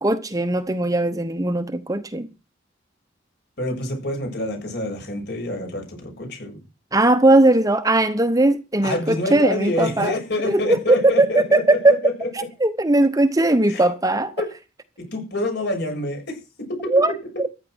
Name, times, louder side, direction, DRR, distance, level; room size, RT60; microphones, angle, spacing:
voice 1, 0.0-2.3 6.9-10.2 10.4-12.0 12.6-14.3 16.9-17.1, right 2 dB, 20° right, 0.9 m, -19 dB
voice 2, 3.6-6.6 8.8-12.3 13.6-13.8 14.4-14.5 15.0-17.5, left 1 dB, 60° left, 7.1 m, -27 dB
14.5 x 10.5 x 6.2 m
head